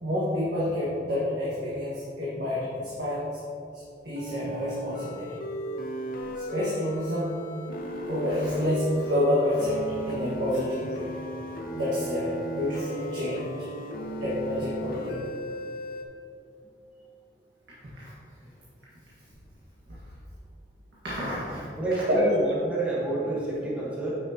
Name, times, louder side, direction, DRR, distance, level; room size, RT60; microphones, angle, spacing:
voice 1, 0.0-3.2 4.0-5.4 6.4-7.3 8.1-11.2 11.7-13.5 14.2-15.3 17.9-18.1 19.9-20.0 21.0-22.3, left 1 dB, 65° right, -8 dB, 1.6 m, -28 dB
sound 1, 4.1-16.0, right 1 dB, 50° left, 0.7 m, -36 dB
voice 2, 21.8-24.1, right 2 dB, 10° right, -7 dB, 1.3 m, -29 dB
9.2 x 6.3 x 2.8 m, 2.5 s
head